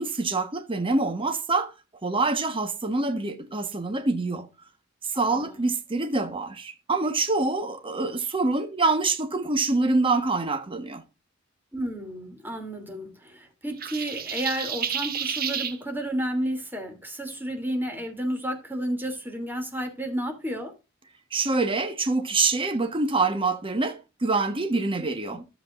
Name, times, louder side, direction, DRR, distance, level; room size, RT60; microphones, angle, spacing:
voice 1, 0.0-1.7 2.0-4.5 5.2-11.0 21.3-25.4, right 3 dB, 25° right, 1.2 m, -25 dB
voice 2, 5.1-5.6 11.7-20.7 25.0-25.4, right 1 dB, 10° right, 2.9 m, -32 dB
sound 1, 13.8-15.8, right 8 dB, 50° right, 1.5 m, -30 dB
13.5 x 7.7 x 2.5 m
head